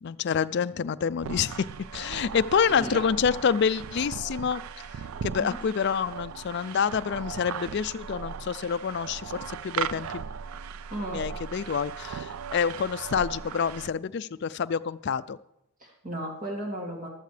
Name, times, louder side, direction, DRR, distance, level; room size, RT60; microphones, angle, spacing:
voice 1, 0.0-1.7 1.9-4.6 5.2-10.2 11.1-15.4, left 6 dB, 50° left, 15 dB, 0.3 m, -27 dB
sound 1, 1.2-13.9, right 7 dB, 70° right, 0.4 m, -38 dB
voice 2, 2.6-3.1 5.4-5.6 10.9-11.2 15.8-17.1, right 1 dB, 35° right, 0 dB, 2.4 m, -35 dB
15.0 x 13.0 x 3.3 m, 0.85 s
head